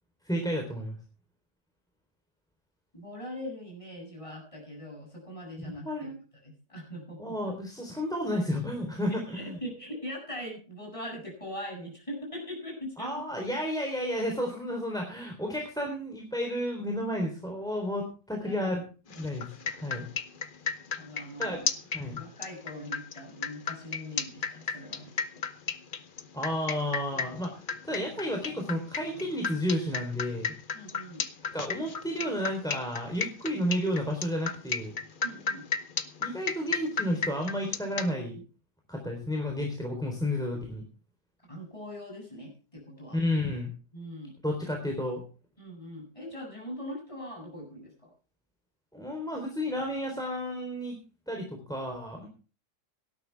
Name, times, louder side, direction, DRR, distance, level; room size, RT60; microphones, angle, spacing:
voice 1, 0.2-1.0 5.6-6.2 7.2-9.6 13.0-18.8 19.2-19.4 19.7-20.1 21.4-21.6 21.9-22.2 26.3-30.5 31.5-34.9 36.2-38.4 38.9-40.8 43.1-43.7 44.4-45.2 48.9-51.0 51.3-52.3, equal, ahead, 2 dB, 3.7 m, -32 dB
voice 2, 2.9-6.1 6.4-7.4 9.1-13.1 18.3-18.8 19.1-19.4 20.0-20.1 21.0-21.7 22.1-25.1 30.7-31.2 35.2-35.7 41.5-43.2 43.9-44.3 45.6-48.1, equal, 20° left, 0 dB, 7.8 m, -41 dB
sound 1, 19.1-38.1, left 6 dB, 40° left, 0.9 m, -34 dB
18.0 x 13.0 x 3.5 m, 0.36 s
omnidirectional pair, 1.8 m